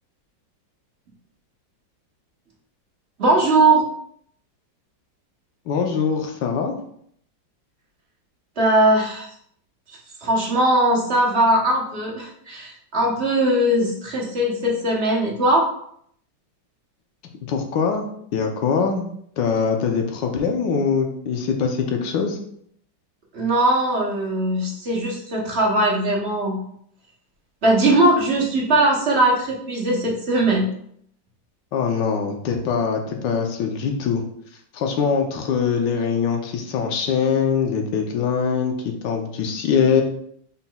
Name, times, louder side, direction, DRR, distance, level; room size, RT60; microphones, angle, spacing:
voice 1, 3.2-3.8 8.6-9.3 9.9-15.7 23.3-26.6 27.6-30.7, right 1 dB, 45° right, -3 dB, 0.9 m, -20 dB
voice 2, 5.7-6.7 17.5-19.1 19.4-22.4 31.7-34.2 34.7-40.0, left 6 dB, 75° left, 3 dB, 1.3 m, -23 dB
5.7 x 4.1 x 2.3 m, 0.67 s
omnidirectional pair, 2.1 m